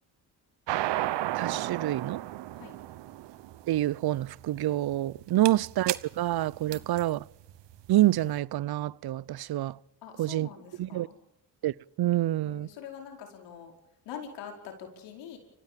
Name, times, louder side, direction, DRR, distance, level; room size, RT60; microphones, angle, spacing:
sound 1, 0.7-8.2, right 14 dB, 80° right, 1.1 m, -34 dB
voice 1, 1.3-2.2 3.7-7.2 7.9-9.8 10.2-10.5 10.8-11.1 11.6-12.7, right 15 dB, 60° right, 0.7 m, -27 dB
voice 2, 10.0-11.2 12.4-13.7 14.0-15.4, left 8 dB, 90° left, 5.0 m, -44 dB
29.0 x 15.5 x 7.6 m
supercardioid pair, 60°, 42 cm